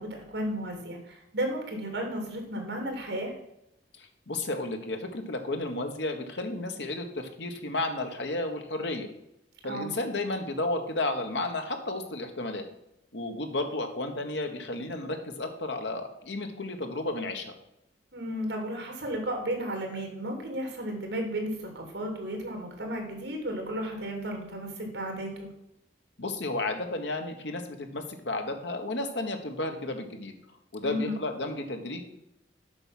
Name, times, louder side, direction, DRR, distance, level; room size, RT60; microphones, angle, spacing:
voice 1, 0.0-3.3 9.7-9.9 18.1-25.5 30.8-31.1, equal, 70° right, 2 dB, 2.8 m, -33 dB
voice 2, 4.0-9.1 9.6-12.7 13.1-17.5 26.2-30.3 30.7-32.0, left 2 dB, 75° left, 5 dB, 1.4 m, -32 dB
7.9 x 6.0 x 5.8 m, 0.84 s
head